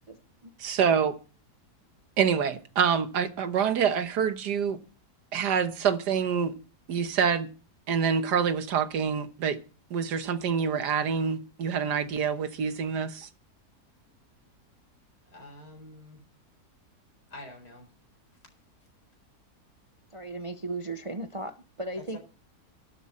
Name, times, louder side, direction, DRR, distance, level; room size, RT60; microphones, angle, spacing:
voice 1, 0.1-0.5 20.1-22.2, right 2 dB, 30° right, 0.6 m, -36 dB
voice 2, 0.6-1.1 2.2-4.8 5.3-6.5 6.9-7.5 7.9-9.6 9.9-13.3, right 7 dB, 90° right, 1.7 m, -26 dB
voice 3, 15.3-16.2 17.3-17.9 22.0-22.2, left 1 dB, 80° left, 5.1 m, -46 dB
12.0 x 12.0 x 4.2 m
omnidirectional pair, 1.7 m